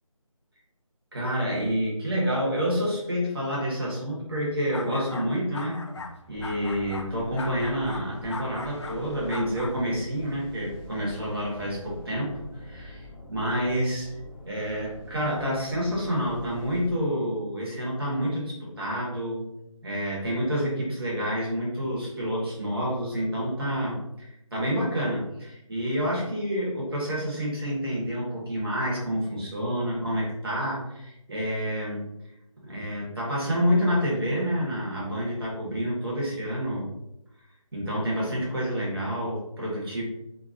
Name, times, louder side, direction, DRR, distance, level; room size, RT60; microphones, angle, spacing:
voice 1, 1.1-5.8 6.3-14.1 14.4-19.4 19.8-32.1 32.6-36.9 37.7-40.0, equal, 45° right, -5 dB, 1.2 m, -28 dB
sound 1, 4.7-5.3 5.5-6.1 6.4-9.8, left 3 dB, 55° left, 0.5 m, -39 dB
sound 2, 6.3-16.9, left 1 dB, 5° right, 0.5 m, -44 dB
2.7 x 2.4 x 2.5 m, 0.86 s
figure-of-eight pair, 165°, 17 cm